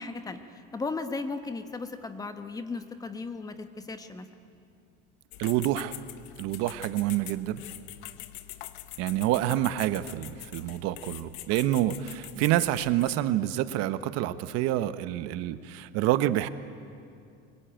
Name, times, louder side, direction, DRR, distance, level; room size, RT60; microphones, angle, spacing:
voice 1, 0.0-4.3, left 3 dB, 10° left, 9 dB, 1.0 m, -36 dB
sound 1, 5.3-13.1, left 15 dB, 70° left, 1.1 m, -44 dB
voice 2, 5.4-6.0 6.4-7.6 9.0-16.5, right 13 dB, 55° right, 13 dB, 1.0 m, -27 dB
24.5 x 21.0 x 9.1 m, 2.4 s
cardioid pair, 165°, 30 cm